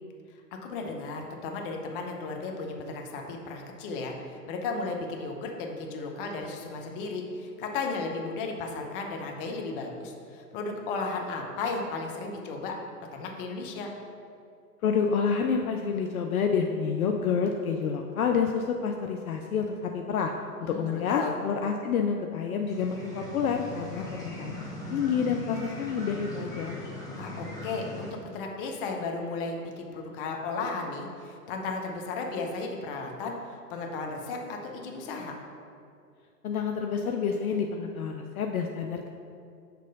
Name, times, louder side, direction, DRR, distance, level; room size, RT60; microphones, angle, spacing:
voice 1, 0.6-12.8 13.1-13.9 20.6-21.4 27.2-35.4, left 3 dB, 35° left, 2 dB, 0.8 m, -34 dB
voice 2, 14.8-20.3 20.6-24.5 24.9-26.8 36.4-39.1, left 6 dB, 65° left, 3 dB, 0.5 m, -28 dB
sound 1, 22.7-28.1, left 1 dB, 5° left, 0.9 m, -39 dB
6.8 x 3.1 x 5.2 m, 2.5 s
figure-of-eight pair, 105°, 48 cm